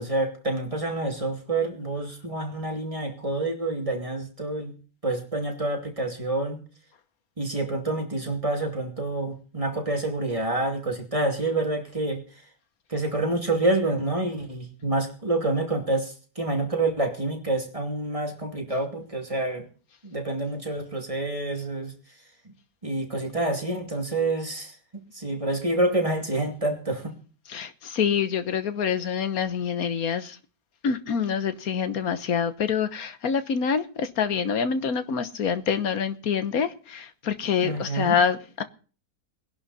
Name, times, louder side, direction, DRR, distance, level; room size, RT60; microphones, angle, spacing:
voice 1, 0.0-4.7 5.0-6.6 7.4-12.2 12.9-19.6 20.0-21.9 22.8-24.7 25.1-27.1 37.6-38.2, right 2 dB, 20° right, 2.7 m, -27 dB
voice 2, 27.5-30.4 30.8-38.6, left 7 dB, 80° left, 1.6 m, -26 dB
20.0 x 11.5 x 4.2 m
omnidirectional pair, 1.5 m